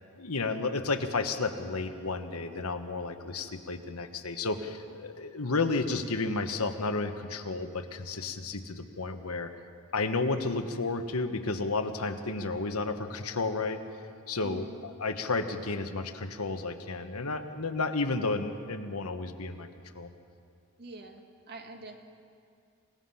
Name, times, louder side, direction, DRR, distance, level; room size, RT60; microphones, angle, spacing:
voice 1, 0.2-9.5 9.9-13.8 14.3-19.7 19.9-20.1, left 3 dB, 80° left, 7 dB, 1.3 m, -32 dB
voice 2, 14.4-14.8 20.8-21.9, right 2 dB, 50° right, 4 dB, 1.8 m, -45 dB
26.5 x 17.5 x 5.7 m, 2.4 s
head